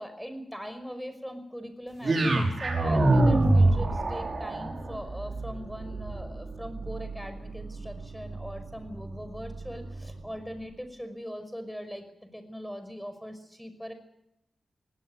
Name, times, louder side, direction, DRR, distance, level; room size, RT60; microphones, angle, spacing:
voice 1, 0.0-13.9, equal, ahead, 9 dB, 5.5 m, -41 dB
sound 1, 2.0-10.2, right 2 dB, 50° right, 5.8 m, -27 dB
21.0 x 18.5 x 8.1 m, 0.81 s
cardioid pair, 75°, 0 cm